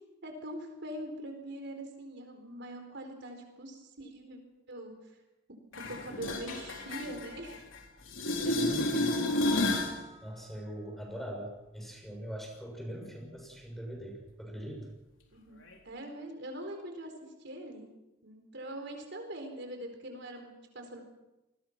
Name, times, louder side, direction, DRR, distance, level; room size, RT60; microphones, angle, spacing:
voice 1, 0.2-4.4 4.7-4.9 5.9-7.6 15.3-15.6 15.8-17.1 17.4-17.9 18.2-21.0, right 1 dB, 60° right, 4 dB, 4.3 m, -43 dB
sound 1, 5.7-7.8 8.1-10.0 15.7-15.8, left 1 dB, 80° left, 4.0 m, -31 dB
voice 2, 8.4-9.3 10.2-14.9, equal, ahead, 1 dB, 6.9 m, -42 dB
28.5 x 21.0 x 6.0 m, 0.99 s
head